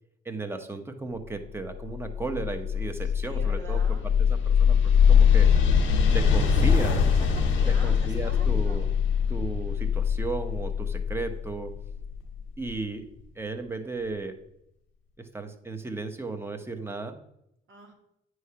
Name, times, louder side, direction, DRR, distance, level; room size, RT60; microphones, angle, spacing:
voice 1, 0.2-4.8 5.1-5.5 6.1-7.1 7.6-8.9 9.3-11.7 12.6-13.0 13.3-14.3 15.2-17.2, right 3 dB, 10° right, 6 dB, 0.9 m, -35 dB
sound 1, 1.9-12.6, left 7 dB, 90° left, 1.0 m, -22 dB
voice 2, 3.0-4.1 6.6-8.9 17.7-17.9, right 4 dB, 70° right, -1 dB, 2.0 m, -46 dB
9.0 x 3.2 x 5.6 m, 0.79 s
cardioid pair, 90°, 20 cm